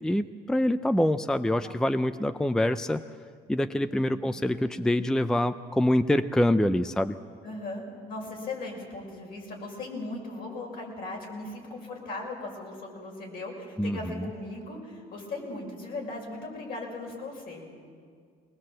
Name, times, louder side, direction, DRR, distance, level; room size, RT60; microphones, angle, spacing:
voice 1, 0.0-3.0 3.5-7.2 13.8-14.3, left 1 dB, 5° left, 12 dB, 0.4 m, -25 dB
voice 2, 1.6-2.0 3.9-4.2 7.4-17.7, left 2 dB, 60° left, -1 dB, 6.3 m, -38 dB
21.5 x 20.0 x 7.7 m, 2.2 s
cardioid pair, 110°, 17 cm